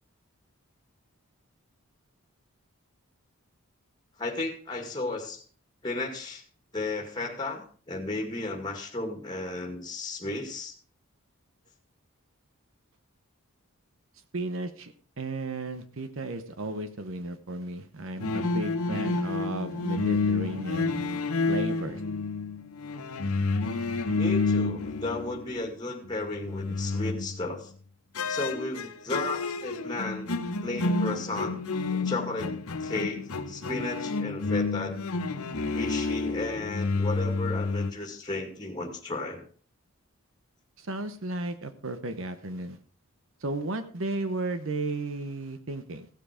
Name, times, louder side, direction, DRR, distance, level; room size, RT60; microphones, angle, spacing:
voice 1, 4.2-5.4 5.8-6.4 6.7-10.7 24.2-27.7 28.3-30.3 30.6-31.6 31.9-32.5 32.8-35.0 35.7-39.4, left 2 dB, 20° left, 2 dB, 2.2 m, -34 dB
voice 2, 14.3-21.2 21.5-22.0 40.8-42.8 43.4-46.1, right 2 dB, 60° right, 10 dB, 0.9 m, -34 dB
sound 1, 18.2-25.7 26.1-27.6 28.1-37.9, left 3 dB, 75° left, 1.0 m, -30 dB
15.5 x 7.5 x 5.0 m, 0.43 s
head